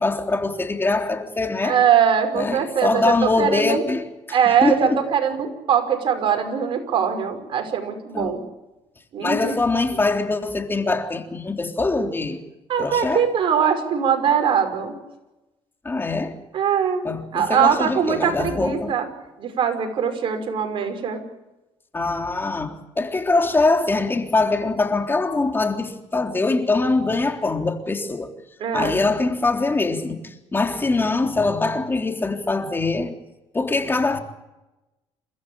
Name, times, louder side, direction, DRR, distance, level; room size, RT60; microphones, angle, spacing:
voice 1, 0.0-1.8 2.3-5.0 8.1-8.4 9.2-12.4 12.8-13.3 15.8-16.4 17.0-18.9 21.9-28.3 28.7-33.2 33.5-34.2, left 3 dB, 20° left, 3.5 m, -23 dB
voice 2, 1.6-3.8 4.3-8.4 9.1-9.5 12.7-15.0 16.5-17.0 17.3-19.1 19.4-21.2 28.6-29.0, right 7 dB, 55° right, 5.7 m, -21 dB
29.0 x 14.5 x 8.8 m
cardioid pair, 95°, 10 cm